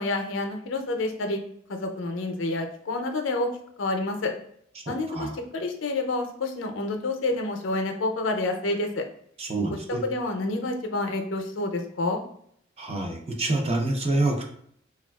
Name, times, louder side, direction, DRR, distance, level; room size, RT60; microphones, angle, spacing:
voice 1, 0.0-1.4 1.7-3.5 3.8-4.3 4.9-9.0 9.7-12.2, left 2 dB, 80° left, 4 dB, 0.5 m, -28 dB
voice 2, 4.9-5.3 9.4-10.0 12.8-14.6, right 2 dB, 30° right, 2 dB, 0.5 m, -27 dB
3.4 x 2.3 x 2.2 m, 0.67 s
head